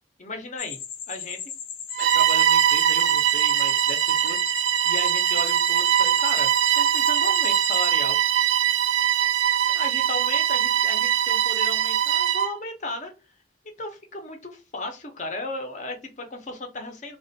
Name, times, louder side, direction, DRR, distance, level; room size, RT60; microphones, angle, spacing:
voice 1, 0.2-0.8 1.1-1.4 2.1-6.5 6.8-8.2 9.7-13.1 13.8-17.2, left 2 dB, 40° left, 4 dB, 0.7 m, -35 dB
sound 1, 0.6-7.9, left 7 dB, 80° left, 0.5 m, -37 dB
Bowed string instrument, 1.9-12.6, right 10 dB, 80° right, 0.3 m, -22 dB
3.3 x 2.3 x 2.6 m, 0.29 s
head